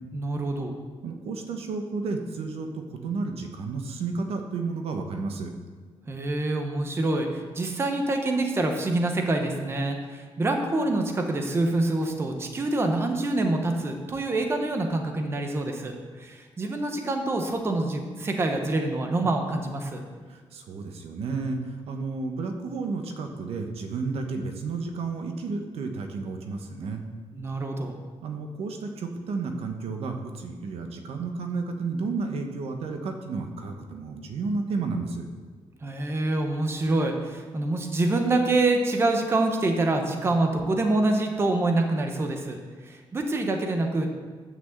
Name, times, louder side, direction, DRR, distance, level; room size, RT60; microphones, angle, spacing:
voice 1, 0.1-0.7 6.1-20.0 27.3-28.0 35.8-44.1, right 2 dB, 25° right, 4 dB, 1.0 m, -26 dB
voice 2, 1.0-5.5 20.3-27.0 28.2-35.2, right 4 dB, 70° right, 4 dB, 1.2 m, -32 dB
9.4 x 6.2 x 7.8 m, 1.5 s
wide cardioid pair, 170°, 10 cm